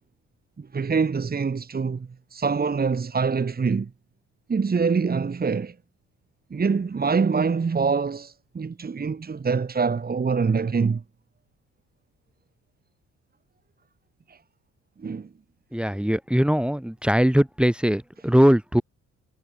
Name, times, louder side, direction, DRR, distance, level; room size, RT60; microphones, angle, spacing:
voice 1, 0.6-3.9 4.5-5.7 6.5-11.0 14.3-14.4 15.0-15.3, right 5 dB, 30° right, 2.0 m, -25 dB
voice 2, 15.7-18.8, equal, 5° right, 2.1 m, -21 dB
cardioid pair, 90°, 30 cm